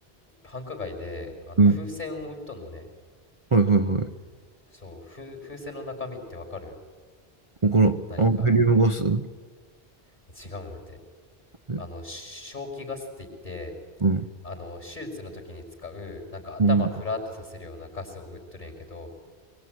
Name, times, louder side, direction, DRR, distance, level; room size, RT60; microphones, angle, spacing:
voice 1, 0.4-2.9 4.7-6.8 8.1-8.6 10.3-11.0 11.8-13.7 14.4-19.1, left 3 dB, 45° left, 4 dB, 5.8 m, -37 dB
voice 2, 3.5-4.1 7.6-9.3 11.7-11.8 14.0-14.3 16.6-16.8, right 3 dB, 30° right, 7 dB, 0.8 m, -20 dB
24.5 x 23.0 x 9.6 m, 1.4 s
omnidirectional pair, 1.1 m